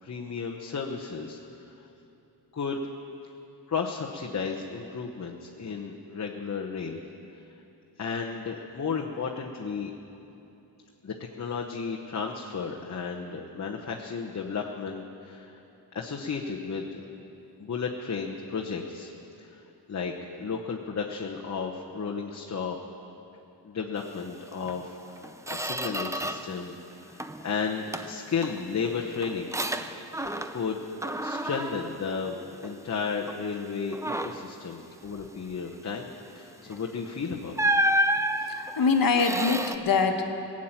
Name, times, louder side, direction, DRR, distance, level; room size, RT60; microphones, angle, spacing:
voice 1, 0.0-1.7 2.5-2.9 3.7-7.0 8.0-9.9 11.0-15.6 15.9-16.9 17.2-17.3 17.6-19.1 19.4-22.8 23.3-29.5 30.5-37.6, left 5 dB, 40° left, 0 dB, 1.0 m, -33 dB
Squeak, 24.7-24.8 25.2-26.6 26.9-27.5 27.9-30.7 31.0-32.9 33.3-33.5 33.9-34.6 36.7-36.9 37.6-39.8, right 1 dB, 10° right, 0.5 m, -30 dB
voice 2, 38.4-40.3, left 4 dB, 55° left, 5 dB, 1.3 m, -25 dB
19.0 x 7.5 x 8.9 m, 2.9 s
wide cardioid pair, 130°, 41 cm